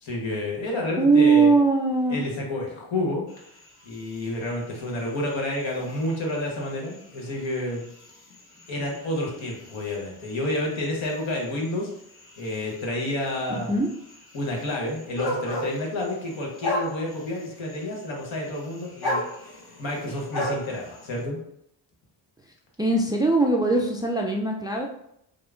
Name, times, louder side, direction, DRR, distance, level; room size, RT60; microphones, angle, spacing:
voice 1, 0.0-1.5 2.1-3.2 3.8-7.9 8.7-11.9 12.4-13.8 14.3-19.2 19.8-21.4, left 1 dB, 70° left, -1 dB, 1.2 m, -30 dB
voice 2, 1.0-2.2 13.5-13.9 22.8-24.9, right 3 dB, 10° right, 0 dB, 0.3 m, -20 dB
sound 1, 3.3-21.2, left 1 dB, 50° left, 1.0 m, -37 dB
4.8 x 2.1 x 2.4 m, 0.74 s
supercardioid pair, 50°, 47 cm